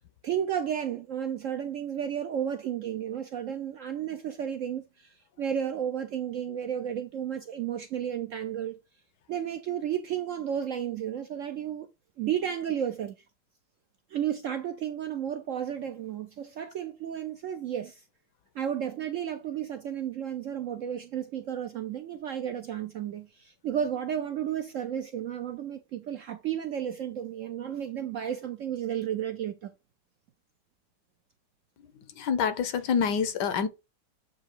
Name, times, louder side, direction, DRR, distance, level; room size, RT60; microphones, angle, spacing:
voice 1, 0.2-8.8 9.3-11.9 12.2-13.1 14.1-18.0 18.5-29.7, right 9 dB, 70° right, 0.7 m, -33 dB
voice 2, 32.1-33.7, left 6 dB, 75° left, 1.4 m, -27 dB
8.0 x 2.7 x 4.5 m
omnidirectional pair, 1.9 m